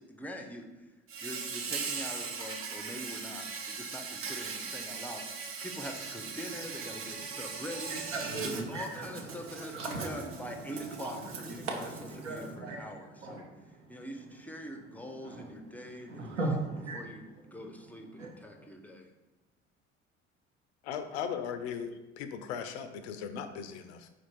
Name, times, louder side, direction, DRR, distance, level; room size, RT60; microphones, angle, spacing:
voice 1, 0.1-0.9 1.2-8.0 8.4-11.9 12.2-13.4 13.9-16.6 16.9-17.2 17.5-19.1, equal, 5° left, 3 dB, 0.5 m, -43 dB
Insect, 1.1-12.5, right 5 dB, 35° right, 0.6 m, -40 dB
voice 2, 6.9-7.6 7.9-12.9 13.2-14.1 15.1-18.7, right 2 dB, 80° right, 0 dB, 0.8 m, -40 dB
voice 3, 20.8-24.1, left 7 dB, 65° left, 9 dB, 0.5 m, -38 dB
4.3 x 2.5 x 4.3 m, 1.1 s
figure-of-eight pair, 55°, 36 cm